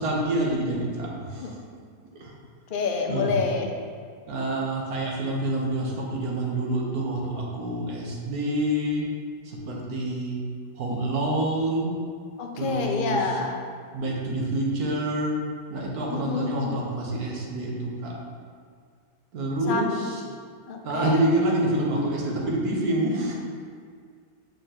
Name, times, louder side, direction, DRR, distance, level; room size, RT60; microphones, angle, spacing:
voice 1, 0.0-1.5 2.2-2.3 3.1-3.4 4.3-9.1 9.4-10.4 10.8-12.0 12.5-13.4 13.9-18.1 19.3-20.2 20.8-23.3, right 1 dB, 80° right, -2 dB, 1.6 m, -27 dB
voice 2, 2.7-3.7 12.4-13.6 16.1-16.7 19.7-19.9 20.7-21.2, left 5 dB, 55° left, 2 dB, 0.6 m, -28 dB
6.6 x 5.5 x 2.9 m, 2.1 s
omnidirectional pair, 1.6 m